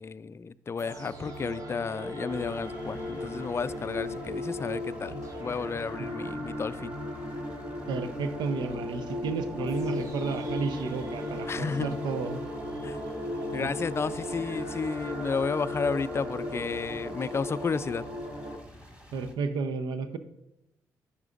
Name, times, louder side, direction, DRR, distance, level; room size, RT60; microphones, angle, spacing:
voice 1, 0.0-7.0 11.5-12.0 12.8-13.0 13.5-18.0, left 5 dB, 35° left, 0.4 m, -32 dB
sound 1, 0.8-18.6, left 1 dB, 45° right, 1.7 m, -36 dB
sound 2, 2.3-19.3, left 1 dB, 15° right, 2.0 m, -50 dB
voice 2, 7.9-12.4 13.6-13.7 19.1-20.2, right 4 dB, 75° right, 0.6 m, -32 dB
10.5 x 6.5 x 2.5 m
supercardioid pair, 50°, 8 cm